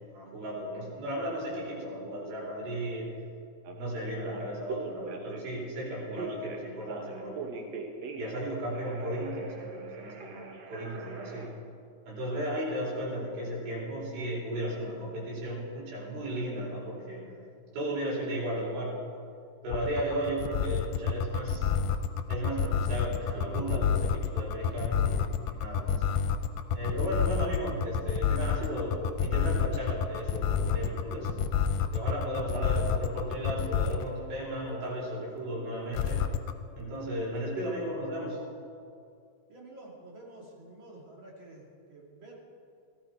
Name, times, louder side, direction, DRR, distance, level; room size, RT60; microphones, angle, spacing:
voice 1, 0.1-3.1 3.8-7.5 8.2-11.5 12.1-17.3 17.7-19.0 19.6-21.7 22.3-26.0 26.7-31.4 31.9-36.2 36.8-38.4, equal, 85° right, -6 dB, 6.3 m, -35 dB
Telephone, 3.7-3.8 4.2-5.6 6.1-8.4 8.7-11.5, right 5 dB, 65° right, 1.9 m, -41 dB
sound 1, 19.7-34.1 35.9-36.5, left 7 dB, 85° left, 2.5 m, -28 dB
voice 2, 39.5-42.3, right 2 dB, 40° right, -2 dB, 2.5 m, -49 dB
16.5 x 14.5 x 4.5 m, 2.4 s
omnidirectional pair, 4.3 m